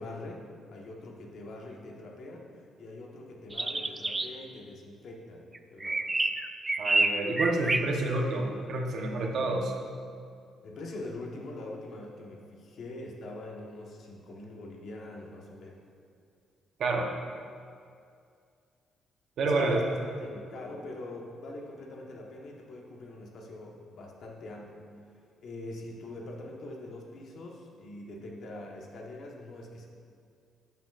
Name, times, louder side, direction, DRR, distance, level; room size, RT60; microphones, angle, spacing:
voice 1, 0.0-6.1 10.6-15.8 19.5-24.8 25.4-29.9, left 2 dB, 65° left, -1 dB, 1.2 m, -43 dB
sound 1, 3.5-4.3 5.5-7.8, right 2 dB, 20° right, 0.3 m, -28 dB
voice 2, 6.8-9.7 16.8-17.1 19.4-19.8, right 2 dB, 65° right, 1 dB, 0.9 m, -28 dB
11.0 x 5.7 x 2.5 m, 2.3 s
cardioid pair, 90°, 0 cm